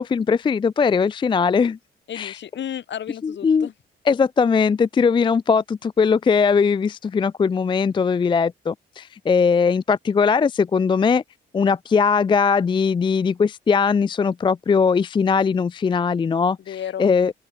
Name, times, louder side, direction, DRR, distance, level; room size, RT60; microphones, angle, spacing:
voice 1, 0.0-1.8 2.1-2.4 3.2-3.7 4.1-11.2 11.5-16.6 17.0-17.3, left 5 dB, 25° left, 0.4 m, -20 dB
voice 2, 2.1-3.7 16.6-17.1, left 10 dB, 65° left, 4.7 m, -33 dB
open air
cardioid pair, 90°, 20 cm